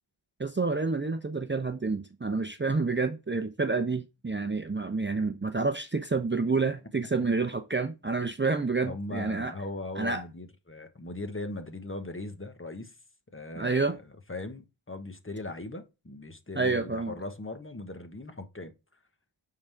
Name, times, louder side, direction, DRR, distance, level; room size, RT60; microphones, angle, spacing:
voice 1, 0.4-9.5 10.0-10.2 13.6-13.9 16.5-17.1, right 4 dB, 25° right, 0.8 m, -29 dB
voice 2, 8.8-12.9 13.3-14.0 14.3-18.7, left 2 dB, 25° left, 1.3 m, -39 dB
8.6 x 4.0 x 3.5 m
cardioid pair, 45°, 49 cm